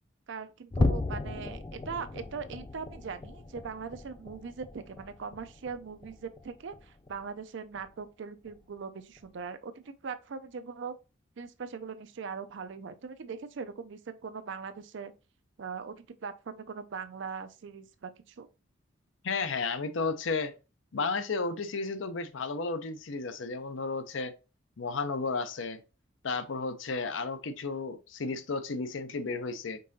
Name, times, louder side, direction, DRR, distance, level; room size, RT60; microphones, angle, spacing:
voice 1, 0.3-10.9 11.4-15.1 15.6-18.5, right 5 dB, 65° right, 0.5 m, -40 dB
sound 1, 0.7-7.4 7.7-8.0 8.4-8.6 9.1-9.3, left 2 dB, 20° left, 0.3 m, -36 dB
voice 2, 19.2-20.5 20.9-24.3 24.8-25.8 26.2-29.8, left 4 dB, 65° left, 0.6 m, -33 dB
5.3 x 3.8 x 2.7 m
head